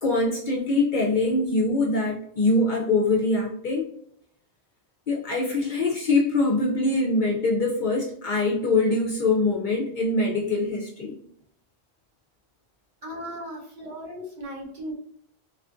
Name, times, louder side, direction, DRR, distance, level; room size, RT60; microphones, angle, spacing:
voice 1, 0.0-3.8 5.1-11.1, left 2 dB, 55° left, -2 dB, 0.6 m, -23 dB
voice 2, 13.0-14.9, equal, 50° right, -3 dB, 0.8 m, -37 dB
2.5 x 2.4 x 2.3 m, 0.68 s
omnidirectional pair, 1.1 m